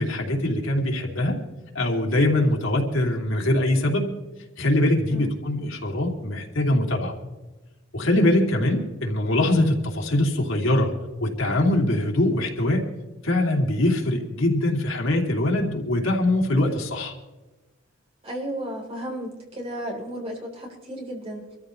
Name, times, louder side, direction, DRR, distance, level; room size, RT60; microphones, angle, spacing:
voice 1, 0.0-1.4 1.7-4.1 4.6-7.1 7.9-10.9 11.2-12.8 13.2-17.1, left 1 dB, 80° left, 0 dB, 2.9 m, -22 dB
voice 2, 18.2-21.4, right 1 dB, 30° right, -1 dB, 3.7 m, -34 dB
25.5 x 14.0 x 3.2 m, 1.1 s
head